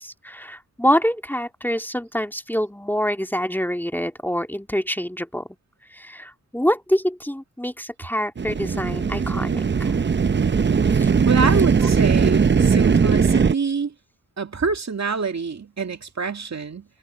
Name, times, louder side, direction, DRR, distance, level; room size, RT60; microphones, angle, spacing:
voice 1, 0.0-5.5 5.9-9.9 10.9-11.1 11.5-11.9, equal, 5° left, 2.3 m, -26 dB
sound 1, 8.4-13.5, right 6 dB, 35° right, 0.7 m, -19 dB
voice 2, 11.2-13.9 14.4-16.8, right 5 dB, 55° right, 2.4 m, -26 dB
cardioid pair, 60°, 33 cm